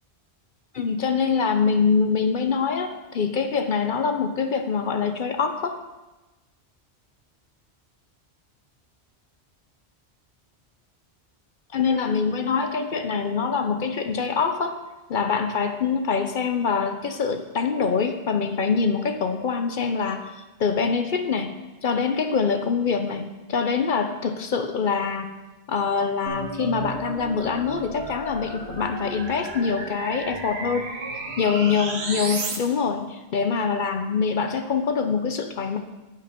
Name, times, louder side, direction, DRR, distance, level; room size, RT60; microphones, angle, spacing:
voice 1, 0.7-5.8 11.7-14.8 15.1-20.2 20.6-21.5 21.8-23.2 23.5-25.3 25.7-30.9 31.4-35.8, left 5 dB, 55° left, 7 dB, 0.7 m, -24 dB
sound 1, 26.3-32.6, right 3 dB, 75° right, 1.3 m, -33 dB
8.5 x 6.1 x 5.2 m, 1.1 s
omnidirectional pair, 1.1 m